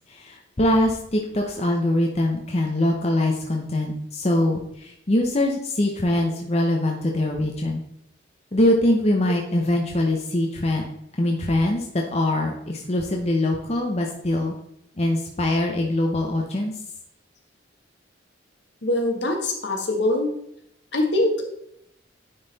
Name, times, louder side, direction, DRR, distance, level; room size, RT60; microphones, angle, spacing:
voice 1, 0.1-7.8 8.5-10.8 11.2-14.5 15.0-16.7, left 1 dB, 35° left, 1 dB, 0.7 m, -23 dB
voice 2, 18.8-20.3 20.9-21.5, left 1 dB, 70° left, 2 dB, 1.4 m, -23 dB
9.7 x 4.0 x 4.0 m, 0.75 s
head